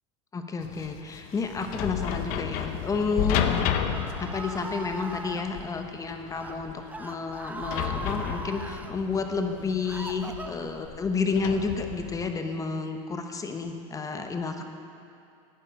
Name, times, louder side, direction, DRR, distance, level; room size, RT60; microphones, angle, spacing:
voice 1, 0.3-3.5 4.2-14.6, left 4 dB, 20° left, 6 dB, 0.9 m, -30 dB
sound 1, 0.6-12.3, left 9 dB, 60° left, 0.8 m, -32 dB
Screaming, 3.0-5.4 6.2-6.5 6.9-8.9 9.5-10.9, right 2 dB, 10° right, 0.7 m, -39 dB
11.5 x 8.9 x 5.2 m, 2.5 s
supercardioid pair, 110°, 17 cm